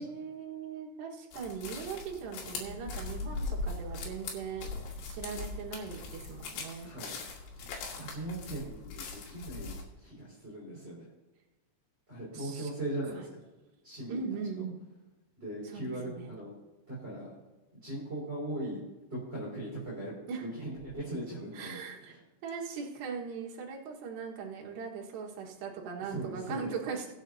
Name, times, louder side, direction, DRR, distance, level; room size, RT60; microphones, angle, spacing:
voice 1, 0.0-6.9 12.3-12.7 14.1-14.8 15.7-16.3 20.3-20.5 21.5-22.1 22.4-27.1, right 5 dB, 65° right, 0 dB, 3.5 m, -39 dB
sound 1, 1.3-9.8, left 3 dB, 70° left, 4.2 m, -40 dB
voice 2, 6.8-7.2 7.5-7.7 7.9-11.1 12.1-13.4 13.8-14.6 15.4-16.6 16.9-17.4 17.8-22.2 26.0-26.7, right 1 dB, 15° right, -7 dB, 4.5 m, -39 dB
23.5 x 8.0 x 2.8 m, 1.1 s
omnidirectional pair, 5.5 m